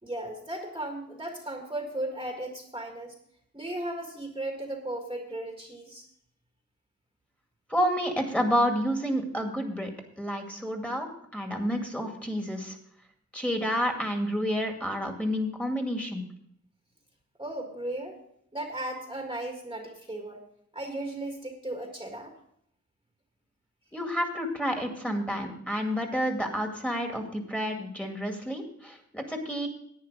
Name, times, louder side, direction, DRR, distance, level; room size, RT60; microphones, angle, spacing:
voice 1, 0.0-3.1 3.5-6.1 17.4-18.2 18.5-20.4 20.7-22.3, right 1 dB, 15° right, 2 dB, 1.7 m, -36 dB
voice 2, 7.7-9.9 10.2-12.8 13.3-16.2 23.9-29.7, equal, 5° left, 3 dB, 2.1 m, -29 dB
11.0 x 9.2 x 5.0 m, 0.69 s
wide cardioid pair, 75°, 30 cm